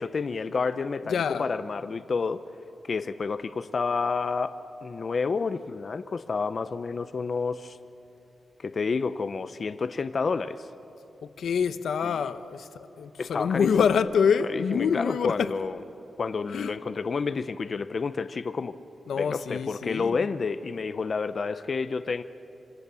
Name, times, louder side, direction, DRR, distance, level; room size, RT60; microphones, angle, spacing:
voice 1, 0.0-2.4 2.8-4.5 4.8-7.8 8.6-10.7 12.0-12.2 13.2-13.7 14.5-15.8 16.2-18.8 19.2-22.2, left 4 dB, 45° left, 0.6 m, -29 dB
voice 2, 1.0-1.5 11.2-12.7 13.0-15.5 16.5-16.7 19.1-20.3, left 6 dB, 90° left, 0.9 m, -26 dB
26.5 x 26.0 x 7.0 m
wide cardioid pair, 145°, 0 cm